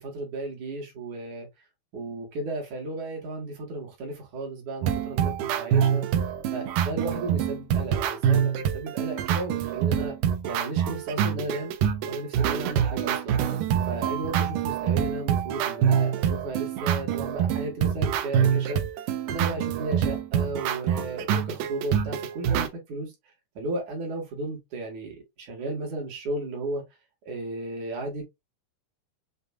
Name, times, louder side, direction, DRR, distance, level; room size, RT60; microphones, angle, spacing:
voice 1, 0.0-1.5 1.9-6.0 6.5-10.1 10.5-11.7 12.1-13.4 13.8-18.9 19.3-23.1 23.6-26.8 27.3-28.2, right 2 dB, 60° right, 2.7 m, -34 dB
sound 1, 4.8-22.7, right 9 dB, 80° right, 2.2 m, -26 dB
6.6 x 2.6 x 2.3 m
omnidirectional pair, 4.0 m